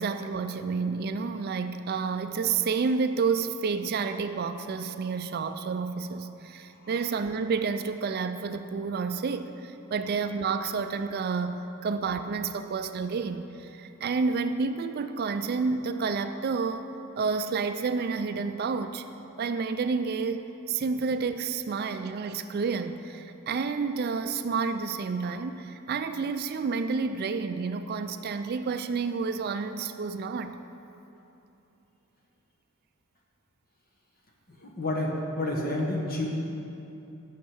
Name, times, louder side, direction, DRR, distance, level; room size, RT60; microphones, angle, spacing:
voice 1, 0.0-16.9 17.2-19.0 19.4-20.4 20.7-30.6, right 5 dB, 45° right, 9 dB, 0.3 m, -30 dB
voice 2, 34.6-36.3, left 1 dB, 45° left, -1 dB, 1.4 m, -29 dB
9.4 x 6.5 x 6.1 m, 2.9 s
head